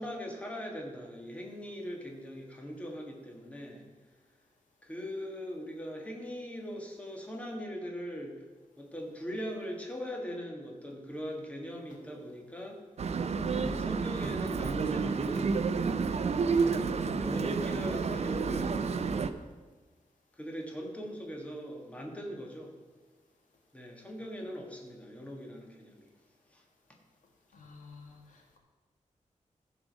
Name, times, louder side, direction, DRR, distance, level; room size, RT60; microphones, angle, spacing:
voice 1, 0.0-3.8 4.8-8.3 8.8-12.8 13.5-15.6 16.5-19.3 20.4-22.8 23.7-26.1 26.5-26.6, equal, 10° left, 0 dB, 1.6 m, -41 dB
sound 1, 13.0-19.3, right 5 dB, 55° right, 0.6 m, -30 dB
voice 2, 27.5-28.6, left 4 dB, 80° left, 1 dB, 1.8 m, -52 dB
14.5 x 5.1 x 6.2 m, 1.3 s
wide cardioid pair, 140°, 13 cm